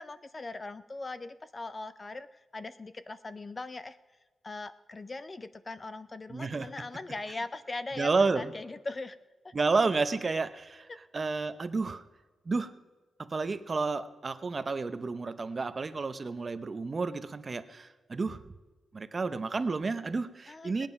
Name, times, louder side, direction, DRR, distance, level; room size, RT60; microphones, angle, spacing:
voice 1, 0.0-4.0 4.4-9.2 9.4-9.5 10.9-11.0 20.5-20.9, left 3 dB, 25° left, 13 dB, 0.4 m, -40 dB
voice 2, 6.3-6.7 8.0-8.5 9.5-10.9 11.1-12.0 12.5-12.7 13.2-18.4 18.9-20.9, right 4 dB, 30° right, 11 dB, 0.6 m, -31 dB
19.0 x 8.9 x 5.3 m, 1.3 s
wide cardioid pair, 145°, 0 cm